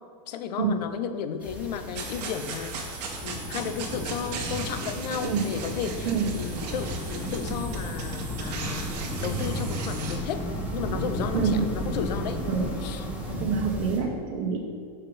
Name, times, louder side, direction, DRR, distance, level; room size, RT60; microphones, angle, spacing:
voice 1, 0.3-10.5 10.7-12.4 12.8-13.1, left 7 dB, 75° left, 9 dB, 0.8 m, -34 dB
sound 1, 1.4-14.0, equal, 5° right, 1.3 m, -34 dB
sound 2, 1.9-10.2, right 4 dB, 75° right, 1.7 m, -38 dB
sound 3, 6.5-13.4, left 1 dB, 25° left, 2.0 m, -38 dB
voice 2, 13.4-14.6, right 6 dB, 55° right, -1 dB, 2.0 m, -26 dB
13.5 x 5.9 x 3.3 m, 2.2 s
supercardioid pair, 150°, 21 cm